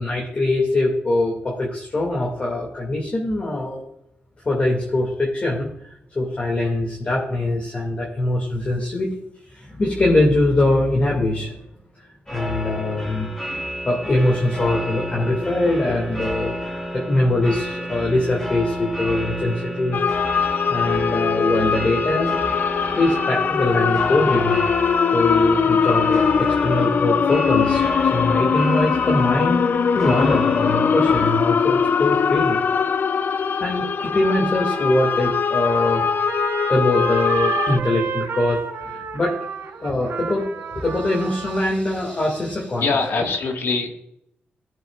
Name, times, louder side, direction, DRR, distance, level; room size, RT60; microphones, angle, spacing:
voice 1, 0.0-3.9 4.4-5.7 6.1-9.1 9.5-11.6 12.3-13.3 13.8-16.6 16.9-20.0 20.7-22.4 22.9-24.6 25.1-29.7 29.9-32.6 33.6-36.1 36.7-39.4 39.8-42.8 43.1-43.3, left 2 dB, 35° left, -2 dB, 2.2 m, -22 dB
sound 1, 12.3-31.3, equal, 15° left, 2.8 m, -31 dB
sound 2, 19.9-37.8, left 6 dB, 50° left, 0.4 m, -21 dB
Trumpet, 34.0-41.6, right 6 dB, 80° right, 1.0 m, -31 dB
voice 2, 42.8-44.0, left 4 dB, 70° left, 3 dB, 1.6 m, -23 dB
17.0 x 7.6 x 2.4 m, 0.77 s
wide cardioid pair, 120°, 4 cm